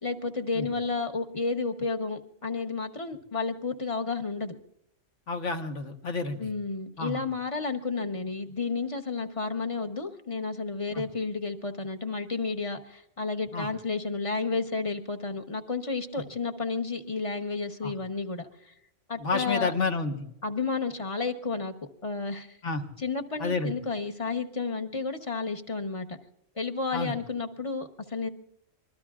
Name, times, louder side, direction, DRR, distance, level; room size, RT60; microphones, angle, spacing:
voice 1, 0.0-4.5 6.4-18.5 19.1-19.7 20.4-21.7 22.0-22.6 23.0-26.2 26.6-28.3, left 4 dB, 30° left, 5 dB, 1.0 m, -31 dB
voice 2, 5.3-6.5 7.0-7.2 10.9-11.0 13.5-13.7 17.8-17.9 19.2-20.2 22.6-22.8 23.4-23.7 26.9-27.1, left 3 dB, 65° left, 5 dB, 1.6 m, -30 dB
25.0 x 21.0 x 2.4 m, 0.77 s
omnidirectional pair, 1.3 m